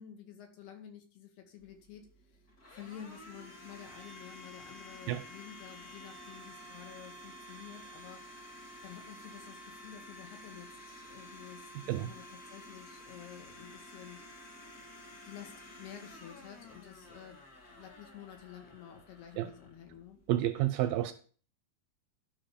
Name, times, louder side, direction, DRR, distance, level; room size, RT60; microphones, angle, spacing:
voice 1, 0.0-2.4 2.7-8.6 8.8-14.2 15.2-17.4 17.6-20.2, left 9 dB, 85° left, 4.1 m, -51 dB
Domestic sounds home sounds, 1.6-20.4, left 1 dB, 50° left, 1.1 m, -51 dB
voice 2, 20.3-21.1, right 13 dB, 80° right, 2.1 m, -30 dB
12.0 x 5.7 x 5.1 m
omnidirectional pair, 4.5 m